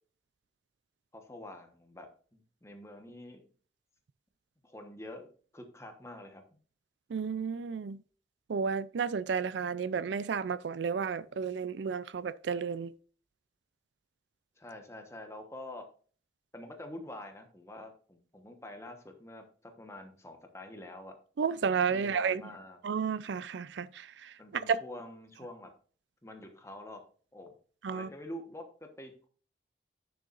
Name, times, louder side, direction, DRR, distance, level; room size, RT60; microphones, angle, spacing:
voice 1, 1.1-3.5 4.6-6.6 14.6-15.8 16.5-21.2 21.9-22.8 24.4-25.7 26.2-27.0 27.3-27.5 27.9-29.3, left 1 dB, 15° left, 1.2 m, -46 dB
voice 2, 7.1-8.0 8.5-12.9 21.4-22.4 22.8-24.8 27.8-28.1, right 6 dB, 80° right, 0.4 m, -32 dB
9.9 x 6.9 x 2.5 m
head